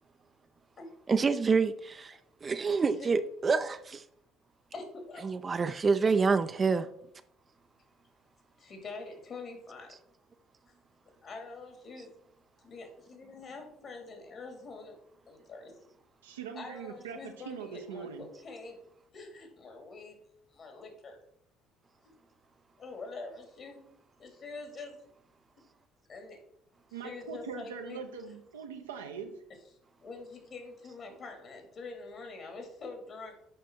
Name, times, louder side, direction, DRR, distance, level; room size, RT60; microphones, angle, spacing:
voice 1, 1.1-2.1 2.4-4.0 5.2-6.9 9.9-10.0, right 4 dB, 35° right, 0.6 m, -27 dB
voice 2, 4.7-5.3 6.0-6.2 8.6-9.9 11.2-12.1 12.6-15.0 15.3-15.7 16.5-18.8 19.1-20.2 20.5-21.2 22.8-23.8 24.2-25.0 26.1-26.4 27.0-28.0 30.0-33.4, left 3 dB, 50° left, 2.7 m, -45 dB
voice 3, 16.2-18.3 26.9-29.4, right 6 dB, 85° right, 0.9 m, -42 dB
8.6 x 5.4 x 4.5 m
hypercardioid pair, 60°, 0 cm